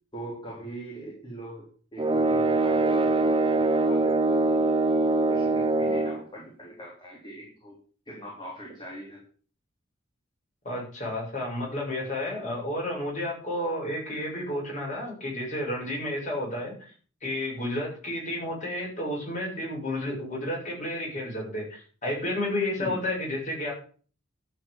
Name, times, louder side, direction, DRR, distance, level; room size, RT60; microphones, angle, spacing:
voice 1, 0.1-4.9 5.3-7.8 8.1-9.2 22.8-23.1, right 1 dB, 25° left, -3 dB, 3.5 m, -41 dB
sound 1, 2.0-6.2, right 2 dB, 25° right, 0.8 m, -23 dB
voice 2, 10.6-16.9 17.2-23.7, left 1 dB, 40° left, -3 dB, 7.1 m, -31 dB
12.0 x 5.8 x 8.4 m, 0.42 s
head